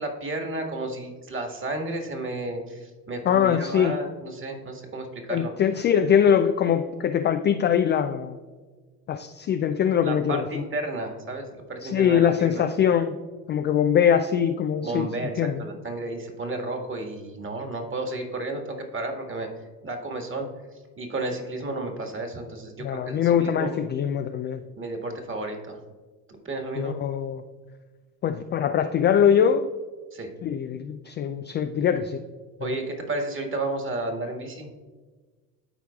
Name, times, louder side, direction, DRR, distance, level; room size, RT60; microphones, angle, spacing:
voice 1, 0.0-5.5 10.0-12.6 14.8-19.5 19.8-20.5 20.7-23.7 24.8-25.8 26.3-26.9 30.1-30.3 32.6-34.7, right 2 dB, 25° right, 4 dB, 1.7 m, -32 dB
voice 2, 3.3-4.0 5.3-8.4 9.1-10.4 11.8-13.2 13.5-15.1 15.4-15.6 22.8-24.6 26.8-27.4 28.2-29.7 30.4-32.2 32.6-32.7, left 8 dB, 25° left, 7 dB, 0.3 m, -22 dB
12.5 x 4.6 x 2.3 m, 1.4 s
hypercardioid pair, 75°, 47 cm